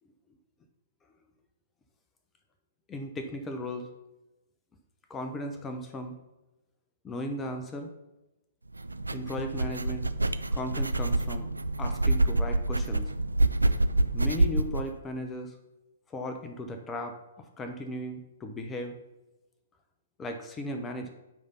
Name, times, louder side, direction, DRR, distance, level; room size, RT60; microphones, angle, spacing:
voice 1, 2.9-3.9 5.1-6.1 7.0-7.9 9.1-10.0 10.5-11.5 11.8-13.1 14.1-15.6 16.1-19.0 20.2-21.1, left 1 dB, 15° left, 5 dB, 0.8 m, -36 dB
sound 1, 8.7-14.9, right 2 dB, 90° right, 0.4 m, -27 dB
9.1 x 3.4 x 5.5 m, 0.98 s
figure-of-eight pair, 115°, 0 cm